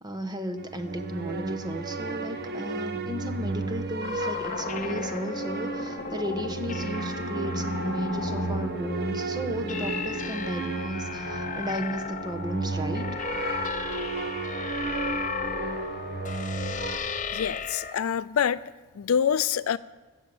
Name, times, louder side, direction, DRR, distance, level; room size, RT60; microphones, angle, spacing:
voice 1, 0.0-13.1, equal, 20° right, 6 dB, 1.2 m, -34 dB
sound 1, 0.6-17.0, right 3 dB, 50° right, 1.0 m, -33 dB
sound 2, 4.0-17.9, left 4 dB, 40° left, 0.8 m, -35 dB
voice 2, 17.3-18.6 18.9-19.8, left 8 dB, 80° left, 18 dB, 0.4 m, -26 dB
14.5 x 7.6 x 7.8 m, 1.3 s
head